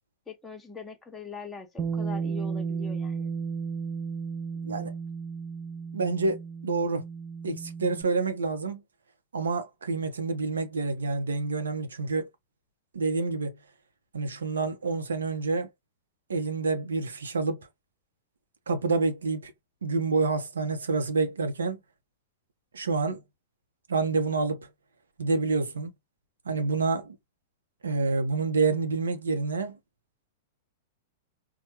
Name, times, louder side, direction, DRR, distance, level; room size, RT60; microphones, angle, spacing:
voice 1, 0.3-3.3, left 5 dB, 15° left, 0.8 m, -42 dB
Bass guitar, 1.8-8.0, right 5 dB, 20° right, 0.5 m, -34 dB
voice 2, 4.6-4.9 5.9-7.0 7.4-8.8 9.3-12.3 12.9-13.6 14.1-15.7 16.3-17.7 18.7-19.5 19.8-21.8 22.7-23.2 23.9-24.7 25.2-25.9 26.4-27.1 27.8-29.8, right 4 dB, 80° right, 0.7 m, -28 dB
4.3 x 2.2 x 2.9 m
figure-of-eight pair, 100°, 0 cm